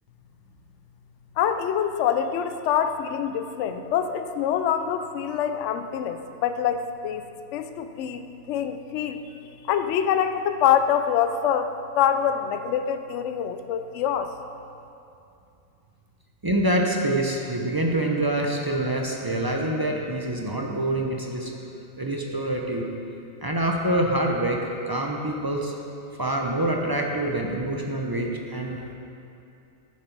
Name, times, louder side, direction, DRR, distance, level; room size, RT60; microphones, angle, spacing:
voice 1, 1.4-7.2 7.5-8.2 8.5-9.2 9.7-14.3, left 8 dB, 65° left, 9 dB, 0.8 m, -25 dB
voice 2, 16.4-21.5 22.0-22.9 23.4-25.7 26.2-28.8, right 1 dB, 25° right, 0 dB, 0.5 m, -26 dB
11.0 x 7.3 x 4.6 m, 2.7 s
omnidirectional pair, 1.5 m